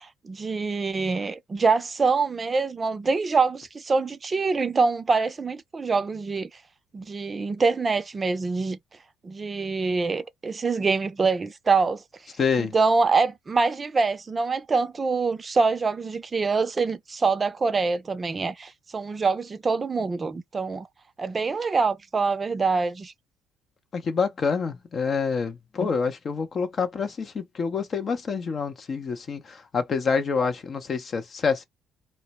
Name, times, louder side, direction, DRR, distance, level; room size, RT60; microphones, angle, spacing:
voice 1, 0.0-6.5 6.9-8.8 9.2-12.0 12.6-20.9 21.2-23.1, right 4 dB, 35° right, 0.4 m, -25 dB
voice 2, 12.4-12.7 23.9-31.6, left 5 dB, 45° left, 0.6 m, -27 dB
2.1 x 2.0 x 2.8 m
supercardioid pair, 70°, 0 cm